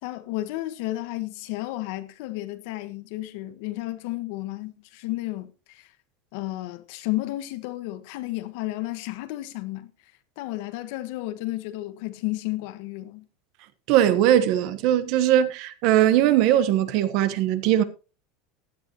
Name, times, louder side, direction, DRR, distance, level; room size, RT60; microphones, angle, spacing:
voice 1, 0.0-5.9 6.3-13.3, left 17 dB, 55° left, 1.4 m, -32 dB
voice 2, 13.9-17.8, right 11 dB, 45° right, 1.2 m, -20 dB
16.0 x 11.0 x 3.0 m
supercardioid pair, 175°, 0 cm